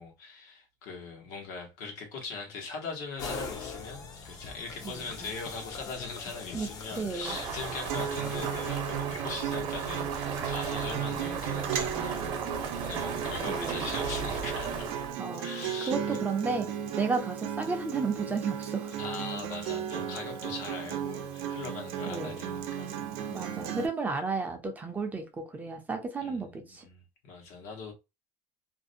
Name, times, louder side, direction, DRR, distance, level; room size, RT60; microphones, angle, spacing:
voice 1, 0.0-14.9 15.4-16.2 19.0-23.5 26.2-27.9, left 4 dB, 85° left, 1.1 m, -41 dB
sound 1, 3.2-9.2, left 4 dB, 35° left, 0.5 m, -42 dB
voice 2, 4.8-5.3 6.5-6.7 7.0-7.4 13.5-13.9 15.2-15.5 15.9-16.7 16.9-18.9 22.1-22.5 23.3-26.8, right 4 dB, 15° right, 0.5 m, -33 dB
sound 2, 7.2-15.1, right 5 dB, 45° right, 0.8 m, -36 dB
Acoustic guitar, 7.9-23.9, right 8 dB, 75° right, 0.5 m, -35 dB
2.5 x 2.1 x 2.6 m
cardioid pair, 155°, 11 cm